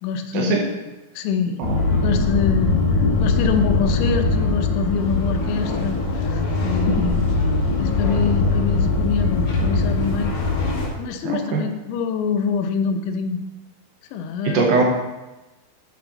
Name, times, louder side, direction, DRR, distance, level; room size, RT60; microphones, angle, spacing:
voice 1, 0.0-0.6 1.2-1.6 2.0-7.3 7.8-10.3 11.0-13.4 14.1-14.8, left 6 dB, 80° left, 5 dB, 3.0 m, -25 dB
sound 1, 1.6-10.9, left 3 dB, 65° left, 1.8 m, -21 dB
voice 2, 11.2-11.6 14.4-14.8, right 5 dB, 90° right, 0 dB, 2.0 m, -21 dB
10.5 x 5.9 x 3.9 m, 1.1 s
omnidirectional pair, 5.5 m